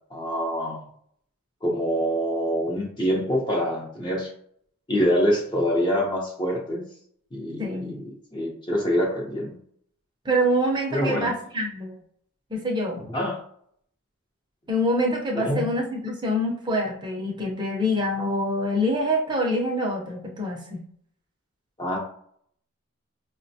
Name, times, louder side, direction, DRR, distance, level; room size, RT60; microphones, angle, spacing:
voice 1, 0.1-0.8 1.6-4.3 4.9-6.8 7.3-9.6 10.9-11.3 13.1-13.4 15.3-15.7 21.8-22.0, equal, 20° left, -1 dB, 0.7 m, -25 dB
voice 2, 7.6-7.9 10.2-12.0 12.5-13.0 14.7-20.8, equal, 20° right, -1 dB, 0.6 m, -25 dB
5.0 x 2.1 x 2.7 m, 0.65 s
head